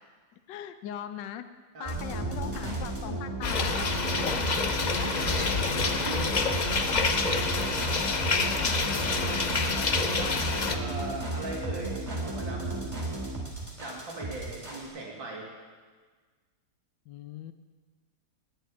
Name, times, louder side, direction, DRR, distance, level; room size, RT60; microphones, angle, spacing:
voice 1, 0.5-1.4 1.8-3.7 8.1-9.7 17.1-17.5, left 10 dB, 75° left, 9 dB, 1.4 m, -40 dB
sound 1, 1.8-14.9, right 2 dB, 15° right, 3.1 m, -34 dB
sound 2, 3.4-10.8, left 4 dB, 45° left, 0.6 m, -28 dB
voice 2, 4.0-6.3 9.7-10.4 10.7-12.8 13.8-15.5, right 2 dB, 80° right, -3 dB, 3.5 m, -40 dB
19.0 x 6.9 x 9.8 m, 1.5 s
omnidirectional pair, 2.0 m